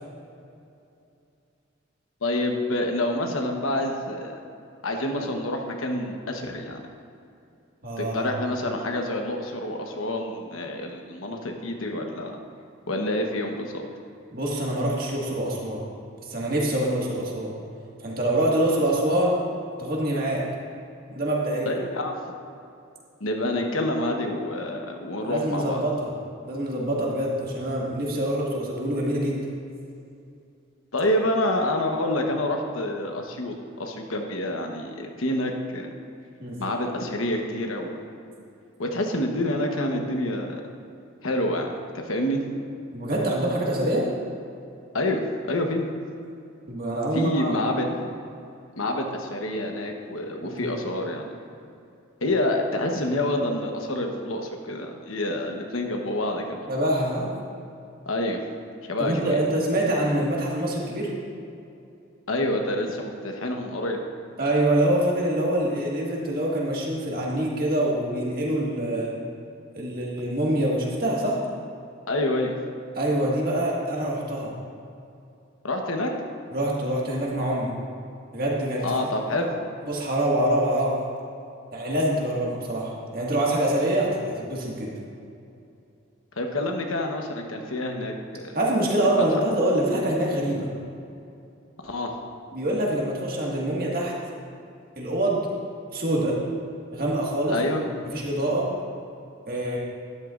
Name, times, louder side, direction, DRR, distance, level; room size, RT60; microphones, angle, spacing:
voice 1, 2.2-4.3 4.8-6.9 8.0-12.4 12.9-13.7 21.7-22.2 23.2-25.8 30.9-35.9 36.6-38.0 38.8-40.6 41.2-42.4 44.9-45.2 45.5-45.8 47.1-47.9 48.8-51.3 52.2-56.6 58.1-58.4 58.8-59.4 62.3-64.0 72.1-72.5 75.6-76.1 78.8-79.5 86.4-88.6 89.0-89.4 91.8-92.1 97.5-97.8, left 1 dB, 85° left, 2 dB, 1.1 m, -27 dB
voice 2, 7.8-8.3 14.3-15.8 16.3-17.5 18.0-19.4 19.8-20.4 21.1-21.7 25.2-26.1 26.4-29.4 36.4-36.6 42.9-44.1 46.7-47.6 50.4-50.7 56.7-57.3 59.0-61.1 64.4-69.2 69.7-71.4 72.9-74.5 76.5-77.7 78.3-78.9 79.4-79.5 79.9-81.0 81.7-84.9 88.5-90.7 92.5-94.1 94.9-95.5 95.9-96.4 96.9-97.6 98.0-98.7 99.5-99.8, right 1 dB, 45° right, -3 dB, 1.8 m, -25 dB
12.5 x 11.0 x 2.5 m, 2.6 s
head